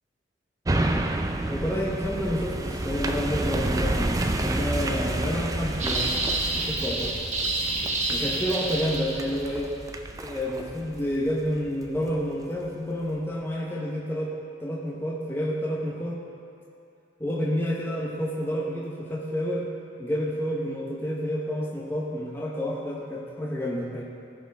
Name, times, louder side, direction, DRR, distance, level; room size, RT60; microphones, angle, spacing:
sound 1, 0.7-12.1 12.6-12.7, right 1 dB, 20° right, 0.3 m, -30 dB
voice 1, 1.5-6.2 6.6-7.1 8.1-9.7 10.2-14.3 14.6-16.2 17.2-19.7 20.0-24.0, equal, 10° left, -4 dB, 0.9 m, -29 dB
sound 2, 5.8-9.5, right 2 dB, 40° right, 0.9 m, -28 dB
15.5 x 5.1 x 3.5 m, 2.5 s
head